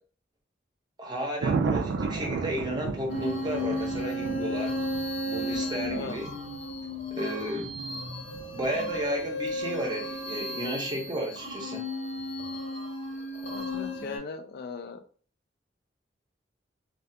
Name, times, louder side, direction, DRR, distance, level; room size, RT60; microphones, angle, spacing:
voice 1, 1.0-4.7 5.2-6.3 7.2-7.8 8.5-11.8, equal, 25° right, 0 dB, 0.7 m, -33 dB
Thunder, 1.4-9.5 12.2-12.5, right 4 dB, 75° right, 0.3 m, -34 dB
sound 1, 3.1-14.2, left 1 dB, 90° left, 0.9 m, -34 dB
voice 2, 5.9-6.2 13.4-15.0, left 4 dB, 60° left, 7 dB, 0.3 m, -38 dB
2.3 x 2.3 x 2.7 m, 0.43 s
head